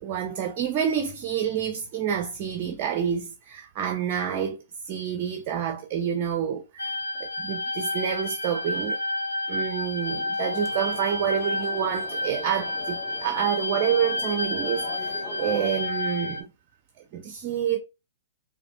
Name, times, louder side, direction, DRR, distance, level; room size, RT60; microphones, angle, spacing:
voice 1, 0.0-4.6 4.8-9.0 9.5-16.5 17.1-17.8, right 8 dB, 40° right, 0.5 m, -28 dB
sound 1, 6.8-16.4, left 2 dB, 85° left, 0.7 m, -30 dB
sound 2, 10.5-15.7, left 1 dB, 5° left, 0.9 m, -41 dB
5.0 x 2.7 x 2.3 m
figure-of-eight pair, 115°, 0 cm